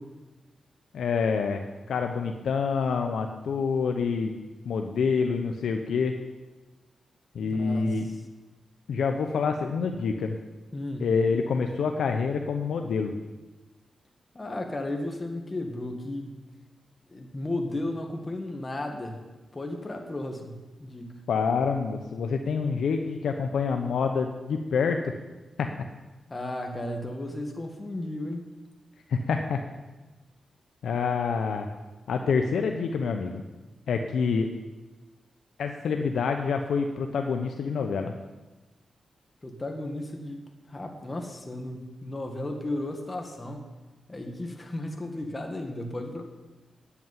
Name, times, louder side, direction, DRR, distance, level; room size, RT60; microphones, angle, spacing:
voice 1, 0.9-4.3 4.6-6.1 7.3-8.1 8.9-10.4 11.0-13.1 21.3-25.1 25.6-25.7 29.1-29.6 30.8-31.7 32.1-33.4 33.9-34.5 35.6-38.1, left 5 dB, 85° left, 4 dB, 0.8 m, -27 dB
voice 2, 7.4-8.2 10.7-11.1 14.3-16.4 17.1-19.2 19.5-21.3 26.3-28.4 39.4-43.7 44.1-46.2, left 1 dB, 25° left, 3 dB, 1.9 m, -34 dB
8.9 x 8.4 x 9.6 m, 1.2 s
cardioid pair, 75°, 0 cm